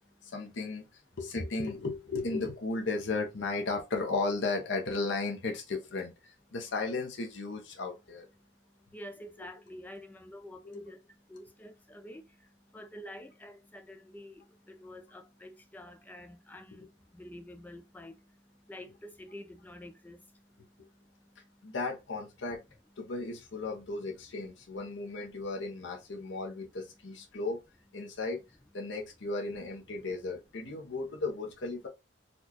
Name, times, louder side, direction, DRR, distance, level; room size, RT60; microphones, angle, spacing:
voice 1, 0.2-8.3 10.6-10.8 21.6-22.6 23.0-27.6 27.9-28.4 28.7-31.9, left 3 dB, 70° left, 0.8 m, -35 dB
voice 2, 8.9-21.7, left 1 dB, 10° left, 0.3 m, -49 dB
4.2 x 2.3 x 2.8 m
head